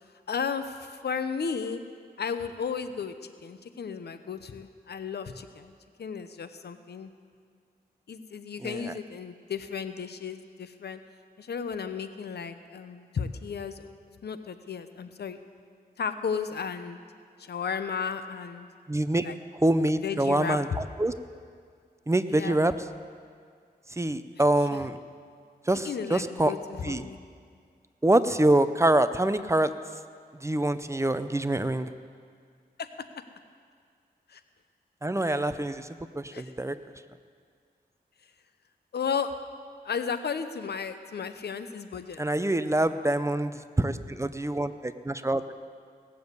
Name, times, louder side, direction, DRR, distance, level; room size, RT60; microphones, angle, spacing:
voice 1, 0.3-1.8 2.2-5.7 6.0-7.1 8.1-11.0 11.4-13.9 14.2-15.4 16.0-17.0 17.4-18.7 19.2-19.4 20.0-20.6 22.3-22.6 24.7-24.9 25.8-27.2 32.8-32.9 34.3-34.4 35.2-35.4 36.3-36.5 38.9-39.3 39.8-42.2, left 6 dB, 75° left, 10 dB, 0.8 m, -34 dB
voice 2, 8.6-8.9 18.9-19.3 19.6-20.7 21.0-21.1 22.1-22.7 23.9-25.0 25.7-26.5 26.8-27.0 28.0-29.7 30.4-31.9 35.0-35.9 36.1-36.8 42.2-45.5, right 1 dB, 15° right, 11 dB, 0.6 m, -25 dB
17.5 x 7.1 x 8.0 m, 2.1 s
wide cardioid pair, 70°, 17 cm